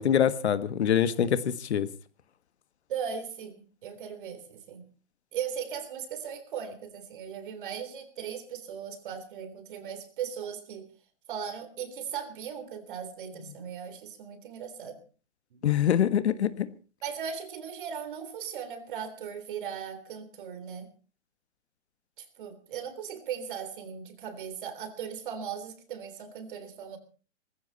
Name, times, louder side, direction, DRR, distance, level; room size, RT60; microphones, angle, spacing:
voice 1, 0.0-1.9 15.6-16.7, left 9 dB, 60° left, 12 dB, 1.7 m, -24 dB
voice 2, 2.9-4.9 5.3-10.9 11.3-15.0 15.5-15.6 17.0-20.9 22.2-27.0, right 7 dB, 45° right, 10 dB, 3.6 m, -38 dB
20.0 x 15.5 x 4.2 m, 0.37 s
hypercardioid pair, 170°, 37 cm